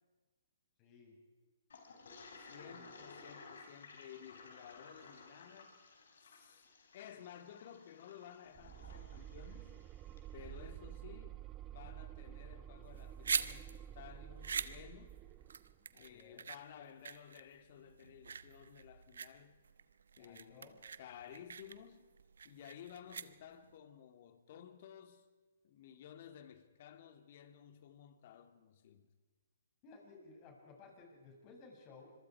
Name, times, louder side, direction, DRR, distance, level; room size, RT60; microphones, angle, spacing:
voice 1, 0.8-1.2 2.6-2.9 15.9-16.4 20.2-20.8 29.8-32.1, left 4 dB, 35° left, 6.8 m, -58 dB
Toilet flush, 1.7-10.3, left 4 dB, 70° left, 4.6 m, -56 dB
voice 2, 2.4-5.8 6.2-6.6 6.9-9.8 10.3-11.5 11.7-15.2 15.9-19.6 20.2-22.1 22.4-25.3 25.6-29.1, left 9 dB, 50° left, 2.4 m, -55 dB
sound 1, 8.5-15.8, right 11 dB, 25° right, 0.9 m, -50 dB
sound 2, 12.8-23.8, right 6 dB, 75° right, 1.0 m, -43 dB
26.0 x 22.5 x 4.8 m
hypercardioid pair, 135°, 0 cm